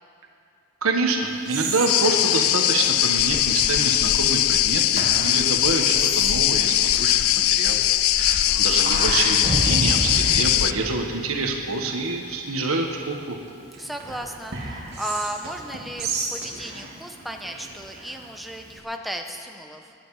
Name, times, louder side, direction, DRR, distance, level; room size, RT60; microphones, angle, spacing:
voice 1, 0.8-7.8 8.1-13.4, right 3 dB, 75° right, 2 dB, 1.4 m, -27 dB
Whispering, 1.2-18.8, right 3 dB, 50° right, 3.0 m, -36 dB
sound 1, 1.9-10.7, left 13 dB, 75° left, 0.4 m, -20 dB
voice 2, 8.2-8.8 13.8-19.9, equal, ahead, 3 dB, 0.9 m, -35 dB
sound 2, 9.4-11.9, right 1 dB, 30° right, 0.8 m, -29 dB
23.0 x 10.5 x 4.9 m, 2.4 s
head